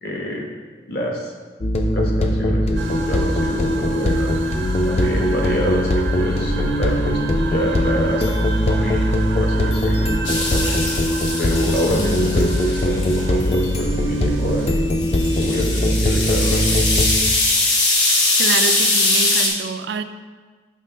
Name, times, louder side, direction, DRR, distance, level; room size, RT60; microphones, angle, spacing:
voice 1, 0.0-0.5 0.9-1.3 1.9-4.3 4.8-11.0 11.4-15.1 15.4-17.0, equal, 55° left, -1 dB, 1.1 m, -27 dB
sound 1, 1.6-17.2, equal, 35° left, 0.5 m, -20 dB
sound 2, 2.8-14.7, right 4 dB, 85° right, 0.7 m, -33 dB
sound 3, 10.2-13.2 15.0-19.5, left 2 dB, 85° left, 1.3 m, -21 dB
voice 2, 18.4-20.0, right 5 dB, 60° right, 9 dB, 0.3 m, -26 dB
6.5 x 3.4 x 5.4 m, 1.4 s
head